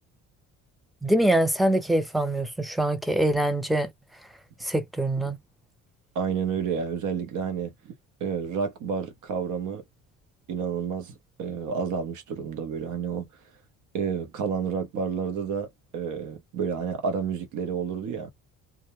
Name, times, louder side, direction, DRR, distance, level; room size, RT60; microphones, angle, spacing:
voice 1, 1.0-3.9 4.6-5.4, right 1 dB, ahead, 0.4 m, -24 dB
voice 2, 6.1-7.9 8.2-9.8 10.5-13.3 13.9-15.7 15.9-18.3, right 6 dB, 70° right, 0.9 m, -30 dB
2.3 x 2.1 x 2.9 m
cardioid pair, 125°, 32 cm